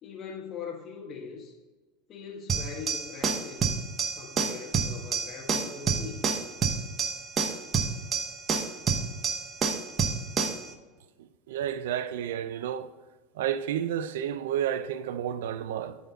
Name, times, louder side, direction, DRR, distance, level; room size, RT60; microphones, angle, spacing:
voice 1, 0.0-1.5 2.1-3.8 4.1-6.2, left 6 dB, 40° left, 1.3 m, -41 dB
sound 1, 2.5-10.7, right 5 dB, 30° right, 1.1 m, -29 dB
voice 2, 11.2-12.9 13.4-16.0, right 10 dB, 75° right, 0.5 m, -31 dB
10.5 x 4.3 x 4.0 m
hypercardioid pair, 95°, 0 cm